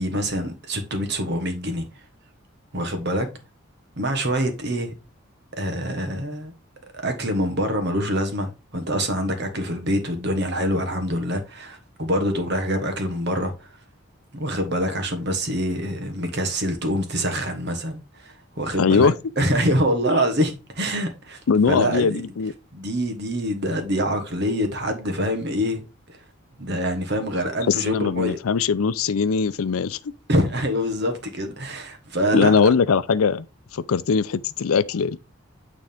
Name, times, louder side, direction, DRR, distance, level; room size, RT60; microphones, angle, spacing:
voice 1, 0.0-1.8 2.7-3.3 4.0-4.9 5.6-6.5 6.9-13.7 14.3-21.4 21.7-22.2 22.7-25.8 26.1-26.2 26.6-28.4 30.3-32.6, equal, 50° right, 1.4 m, -25 dB
voice 2, 18.8-19.1 21.5-22.5 27.7-30.0 32.3-33.5 33.7-35.2, left 5 dB, 85° left, 0.5 m, -20 dB
9.0 x 3.8 x 3.5 m
head